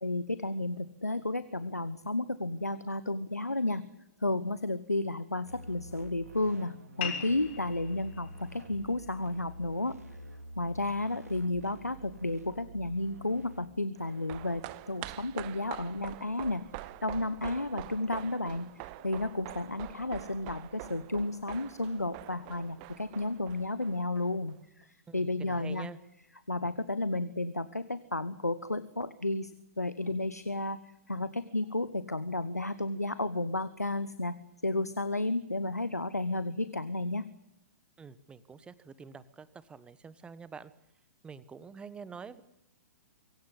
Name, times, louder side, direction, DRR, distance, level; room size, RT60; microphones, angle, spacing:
voice 1, 0.0-3.8 4.2-10.0 10.6-16.6 17.0-25.9 26.5-29.5 29.8-30.8 31.1-34.4 34.6-37.2, left 2 dB, 90° left, 15 dB, 1.1 m, -32 dB
sound 1, 5.4-13.7, right 1 dB, 75° right, 2.9 m, -49 dB
sound 2, 7.0-12.0, left 7 dB, 50° left, 6.4 m, -44 dB
sound 3, 14.0-24.5 24.8-24.9, right 17 dB, 35° right, 1.0 m, -45 dB
voice 2, 25.1-26.0 38.0-40.7 41.2-42.4, right 5 dB, 10° right, 17 dB, 1.3 m, -47 dB
24.5 x 16.5 x 9.7 m, 0.87 s
figure-of-eight pair, 115°, 8 cm